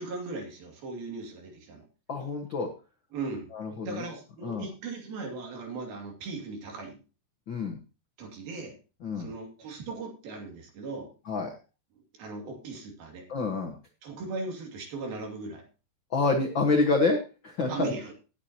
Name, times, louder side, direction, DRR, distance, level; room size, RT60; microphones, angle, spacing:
voice 1, 0.0-1.8 3.1-3.5 3.8-7.0 8.2-8.8 9.2-11.1 12.2-13.3 14.0-15.6 17.7-18.1, right 3 dB, 65° right, 2 dB, 4.3 m, -38 dB
voice 2, 2.1-2.7 3.5-4.1 4.4-4.6 7.5-7.8 9.0-9.3 11.3-11.5 13.3-13.8 16.1-17.9, left 3 dB, 90° left, 3 dB, 1.0 m, -27 dB
18.0 x 8.4 x 2.9 m, 0.31 s
omnidirectional pair, 4.6 m